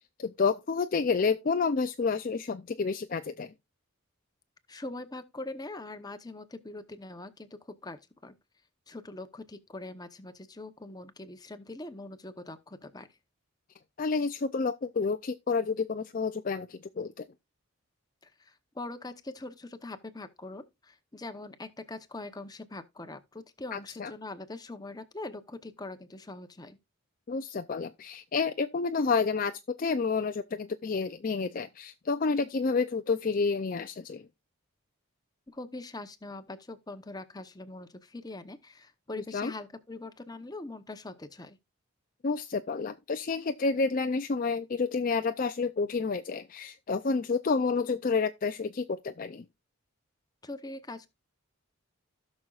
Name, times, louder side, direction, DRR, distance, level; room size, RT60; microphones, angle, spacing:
voice 1, 0.2-3.5 14.0-17.2 23.7-24.1 27.3-34.2 39.1-39.5 42.2-49.4, left 4 dB, 40° left, 0.4 m, -29 dB
voice 2, 4.7-8.3 8.9-13.1 18.2-26.8 35.5-41.6 50.4-51.1, left 2 dB, 20° left, 0.8 m, -42 dB
16.0 x 6.2 x 2.4 m
head